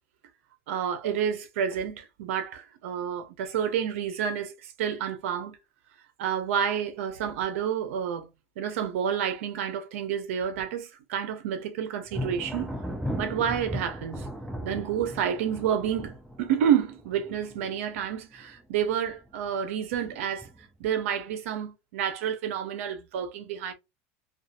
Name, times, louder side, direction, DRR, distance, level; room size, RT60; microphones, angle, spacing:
voice 1, 0.7-5.6 6.2-8.3 8.6-12.7 13.2-14.3 14.6-20.5 20.8-23.7, right 8 dB, 85° right, 0.7 m, -29 dB
Thunder, 12.1-18.6 18.9-19.5 19.9-20.8, equal, ahead, 0.6 m, -37 dB
2.5 x 2.4 x 2.5 m
supercardioid pair, 125°, 7 cm